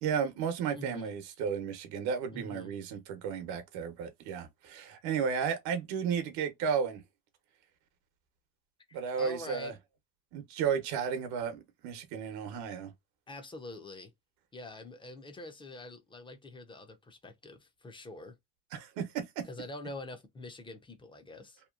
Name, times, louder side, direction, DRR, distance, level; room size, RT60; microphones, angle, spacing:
voice 1, 0.0-7.0 8.9-9.7 10.3-12.9 18.7-19.4, right 7 dB, 80° right, 0.8 m, -33 dB
voice 2, 0.7-1.2 2.3-2.7 8.9-9.8 13.3-14.1 14.5-18.4 19.4-21.6, left 2 dB, 15° left, 0.4 m, -45 dB
2.9 x 2.2 x 2.3 m
cardioid pair, 125°, 39 cm